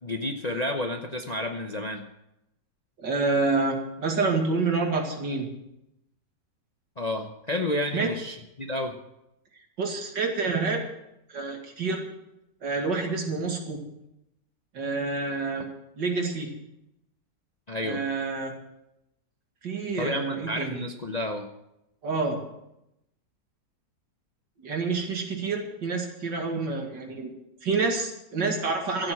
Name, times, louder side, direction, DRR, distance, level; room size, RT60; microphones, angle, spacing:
voice 1, 0.0-2.0 7.0-9.0 17.7-18.0 20.0-21.5, left 1 dB, 35° left, 4 dB, 0.7 m, -31 dB
voice 2, 3.0-5.5 7.9-8.1 9.8-10.8 11.3-12.0 12.6-13.8 14.7-15.7 16.0-16.5 17.8-18.5 19.6-20.8 22.0-22.4 24.6-27.3 27.6-29.1, right 4 dB, 85° right, 2 dB, 2.8 m, -28 dB
13.0 x 8.9 x 7.7 m, 0.86 s
omnidirectional pair, 1.9 m